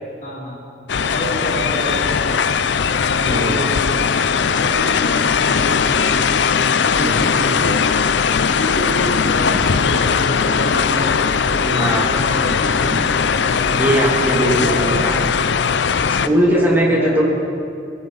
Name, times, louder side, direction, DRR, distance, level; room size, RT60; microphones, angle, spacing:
voice 1, 0.2-0.6 1.1-2.3 3.2-3.7 4.4-6.2 6.8-7.8 8.5-9.5 9.8-11.1 11.5-12.9 13.5-13.6 14.3-14.9 16.5-17.2, equal, 45° left, -7 dB, 5.2 m, -28 dB
sound 1, 0.9-16.3, left 6 dB, 70° left, 0.5 m, -18 dB
voice 2, 3.2-3.6 6.9-7.2 9.5-9.7 11.8-12.1 13.7-15.2 16.2-17.2, right 1 dB, 10° right, -4 dB, 2.7 m, -19 dB
sound 2, 7.7-15.5, equal, 40° right, 2.9 m, -37 dB
23.0 x 14.5 x 4.1 m, 2.5 s
head